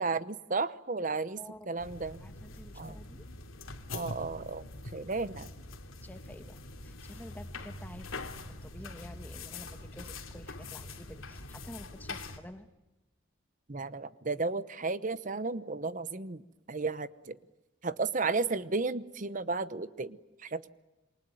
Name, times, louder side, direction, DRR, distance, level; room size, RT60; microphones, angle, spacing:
voice 1, 0.0-1.4 1.7-2.2 2.8-2.9 3.9-5.5 13.7-16.4 16.7-17.4 17.8-20.7, right 3 dB, 40° right, 14 dB, 0.9 m, -33 dB
voice 2, 1.3-1.7 2.2-3.2 6.0-8.2 8.5-12.7, equal, 10° left, 8 dB, 1.6 m, -49 dB
sound 1, 1.8-12.4, left 2 dB, 85° left, 2.8 m, -44 dB
27.5 x 24.0 x 9.1 m, 1.1 s
head